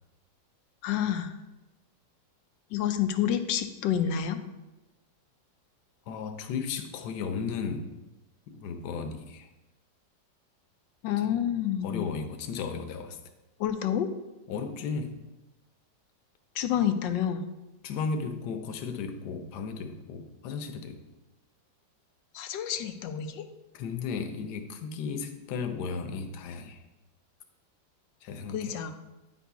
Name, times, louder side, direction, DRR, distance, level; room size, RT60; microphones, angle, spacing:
voice 1, 0.8-1.4 2.7-4.4 11.0-12.1 13.6-14.1 16.6-17.5 22.3-23.5 28.5-28.9, left 9 dB, 90° left, 9 dB, 1.3 m, -28 dB
voice 2, 6.1-7.9 8.5-9.5 11.8-13.2 14.5-15.2 17.8-21.0 23.7-26.8 28.2-28.8, left 5 dB, 70° left, 7 dB, 1.2 m, -35 dB
9.3 x 4.1 x 4.6 m, 1.0 s
omnidirectional pair, 1.9 m